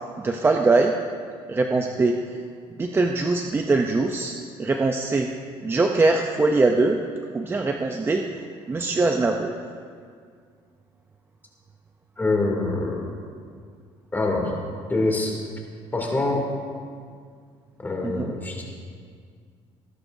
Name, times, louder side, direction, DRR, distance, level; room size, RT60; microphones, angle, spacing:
voice 1, 0.2-0.9 1.5-2.2 2.8-5.3 5.6-7.0 7.3-8.3 8.7-9.5 18.0-18.3, right 3 dB, 20° right, 3 dB, 0.6 m, -22 dB
voice 2, 12.2-13.0 14.1-14.6 14.9-15.4 15.9-16.4 17.8-18.6, left 2 dB, 15° left, -1 dB, 2.7 m, -24 dB
20.0 x 11.5 x 2.7 m, 2.1 s
cardioid pair, 115°, 11 cm